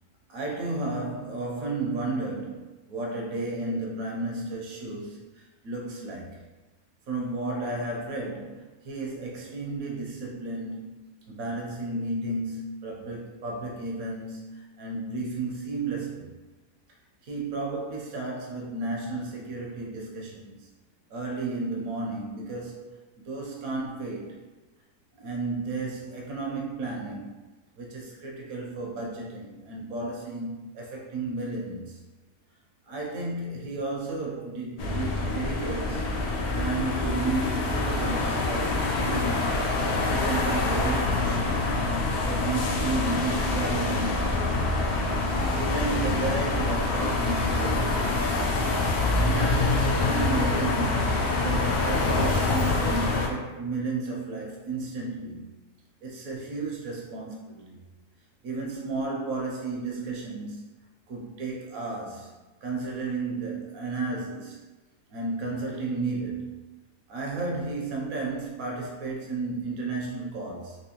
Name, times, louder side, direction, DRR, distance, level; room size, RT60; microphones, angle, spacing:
voice 1, 0.3-6.4 7.1-16.3 17.2-20.7 21.1-23.0 23.2-24.4 25.2-27.3 27.8-32.0 32.9-36.1 36.5-39.5 39.9-41.7 42.2-44.6 45.4-48.1 49.2-55.4 56.0-57.8 58.4-60.6 61.1-62.3 62.6-64.6 65.1-66.6 67.1-70.8, right 3 dB, 65° right, -2 dB, 1.1 m, -33 dB
sound 1, 34.8-53.3, left 2 dB, 85° left, 0.5 m, -26 dB
3.3 x 2.9 x 2.9 m, 1.2 s
omnidirectional pair, 1.7 m